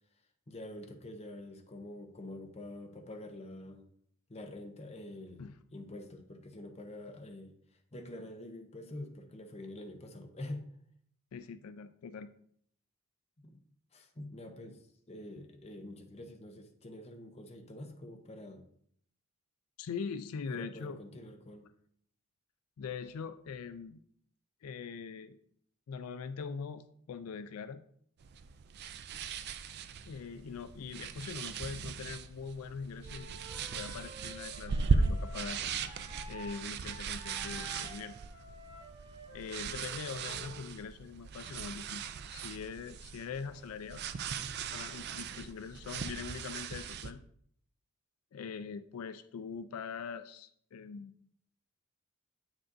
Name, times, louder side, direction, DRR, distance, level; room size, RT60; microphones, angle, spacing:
voice 1, 0.5-3.8 4.3-7.5 7.9-10.7 13.4-13.6 13.9-14.8 15.1-18.7 20.5-21.7, left 1 dB, 30° left, 4 dB, 0.7 m, -46 dB
voice 2, 11.3-12.3 19.8-21.0 22.8-24.0 24.6-25.4 25.9-27.8 30.0-33.3 33.7-35.6 36.3-38.2 39.3-44.0 44.6-47.2 48.3-51.1, left 6 dB, 85° left, 12 dB, 0.4 m, -42 dB
sound 1, 28.2-47.1, right 5 dB, 50° right, 0.4 m, -38 dB
Wind instrument woodwind instrument, 33.0-36.6 36.8-40.7, equal, 25° right, 1.8 m, -51 dB
7.7 x 6.2 x 2.6 m, 0.66 s
head